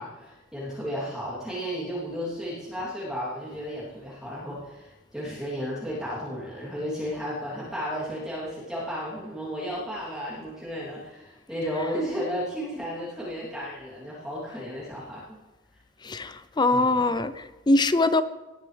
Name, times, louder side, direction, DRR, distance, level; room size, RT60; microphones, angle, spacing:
voice 1, 0.0-15.2 16.7-17.1, equal, 5° right, -10 dB, 3.2 m, -33 dB
voice 2, 16.0-18.2, left 2 dB, 25° left, 13 dB, 0.5 m, -23 dB
19.5 x 11.0 x 3.4 m, 1.1 s
head